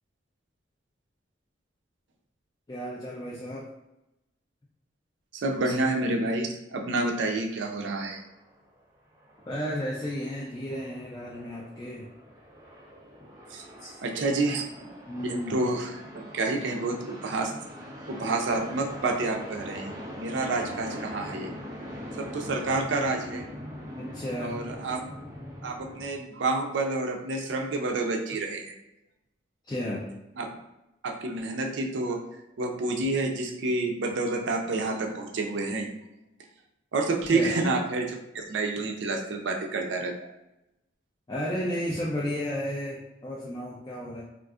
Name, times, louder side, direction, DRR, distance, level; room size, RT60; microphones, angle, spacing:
voice 1, 2.7-3.7 9.4-12.1 13.8-14.0 15.1-15.7 20.1-20.2 24.0-24.6 29.7-30.1 37.3-37.6 41.3-44.2, equal, 20° left, -4 dB, 0.4 m, -33 dB
voice 2, 5.3-8.2 13.5-13.6 14.0-14.6 15.2-17.5 18.1-21.5 22.2-23.4 24.4-25.0 25.6-28.7 30.4-30.5 31.0-32.2 32.6-35.9 36.9-40.3, right 2 dB, 75° right, 2 dB, 0.4 m, -29 dB
sound 1, 8.0-8.8 9.1-26.1, equal, 15° right, 0.7 m, -42 dB
3.6 x 2.4 x 2.4 m, 0.92 s
head